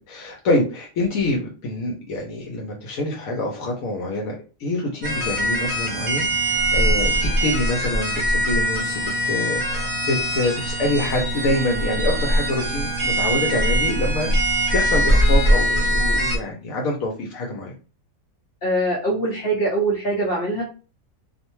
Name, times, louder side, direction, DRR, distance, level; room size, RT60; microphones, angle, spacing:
voice 1, 0.1-17.7, left 1 dB, 80° left, 0 dB, 1.0 m, -26 dB
sound 1, 5.0-16.4, equal, 45° right, 0.9 m, -22 dB
voice 2, 18.6-20.6, right 2 dB, 60° left, -2 dB, 0.7 m, -23 dB
2.5 x 2.1 x 2.9 m, 0.36 s
omnidirectional pair, 1.5 m